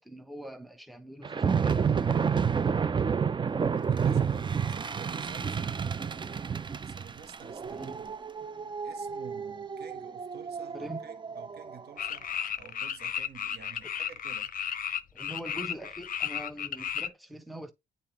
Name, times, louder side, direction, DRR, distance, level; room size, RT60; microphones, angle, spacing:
voice 1, 0.0-2.1 7.7-8.0 10.7-11.0 13.8-13.9 15.1-17.7, right 1 dB, ahead, 1.0 m, -43 dB
sound 1, 1.2-11.8, right 6 dB, 25° right, 0.4 m, -30 dB
voice 2, 3.1-3.4 3.9-8.2 8.8-12.3 12.6-14.5, right 7 dB, 55° right, 1.2 m, -50 dB
sound 2, 12.0-17.1, left 9 dB, 45° left, 0.7 m, -34 dB
8.5 x 4.0 x 2.9 m
cardioid pair, 90°, 20 cm